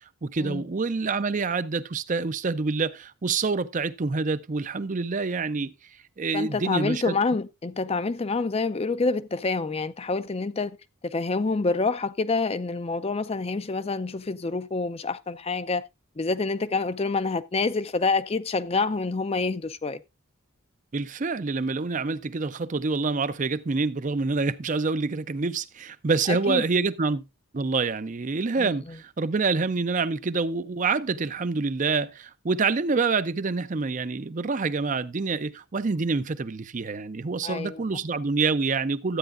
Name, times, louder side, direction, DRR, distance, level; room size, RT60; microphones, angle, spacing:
voice 1, 0.2-5.7 6.2-7.1 20.9-27.2 27.5-39.2, right 4 dB, 35° right, 0.5 m, -27 dB
voice 2, 6.3-10.8 11.0-15.8 16.2-20.0 26.3-26.6 28.6-29.0 37.4-38.0, left 3 dB, 30° left, 0.4 m, -27 dB
13.0 x 8.9 x 2.5 m
head